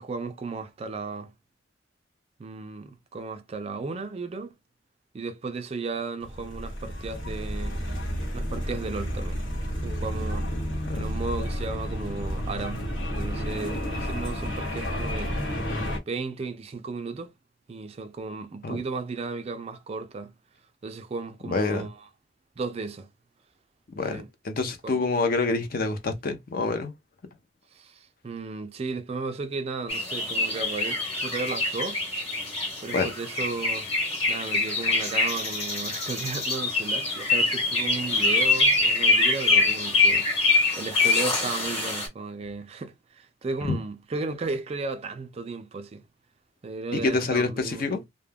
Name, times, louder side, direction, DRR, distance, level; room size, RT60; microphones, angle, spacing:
voice 1, 0.0-1.3 2.4-4.5 5.1-7.8 8.3-9.4 9.8-10.5 10.9-15.4 16.1-17.3 17.7-20.3 20.8-22.0 22.6-23.1 24.1-24.3 24.8-25.0 27.7-32.0 32.8-33.9 34.3-40.3 40.8-46.0 46.6-48.0, right 3 dB, 30° right, 0.3 m, -34 dB
sound 1, 6.2-16.0, equal, 75° left, 0.9 m, -31 dB
voice 2, 21.4-21.9 23.9-26.9 32.9-33.1 43.7-43.8 46.9-48.0, left 3 dB, 50° left, 0.5 m, -27 dB
sound 2, 29.9-42.1, left 3 dB, 30° left, 1.1 m, -24 dB
2.2 x 2.1 x 3.3 m
head